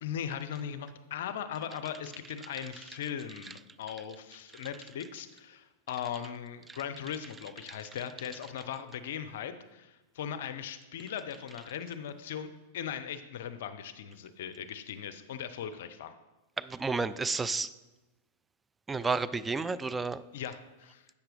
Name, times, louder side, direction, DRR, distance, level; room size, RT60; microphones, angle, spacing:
voice 1, 0.0-12.5 12.7-16.2 20.3-21.1, left 8 dB, 65° left, 10 dB, 0.5 m, -39 dB
voice 2, 16.6-17.7 18.9-20.2, right 4 dB, 15° right, 15 dB, 0.3 m, -31 dB
8.2 x 5.8 x 3.4 m, 1.1 s
hypercardioid pair, 100°, 0 cm